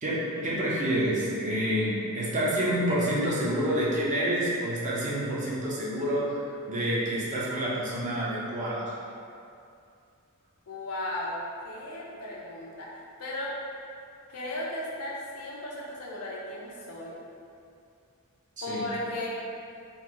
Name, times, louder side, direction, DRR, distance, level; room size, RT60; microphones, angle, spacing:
voice 1, 0.0-6.4 6.7-8.9 18.6-18.9, right 1 dB, 35° right, -7 dB, 0.7 m, -28 dB
voice 2, 10.7-11.4 11.6-13.5 14.3-17.2 18.6-19.3, left 1 dB, 90° left, -4 dB, 0.7 m, -36 dB
2.9 x 2.4 x 3.8 m, 2.5 s
head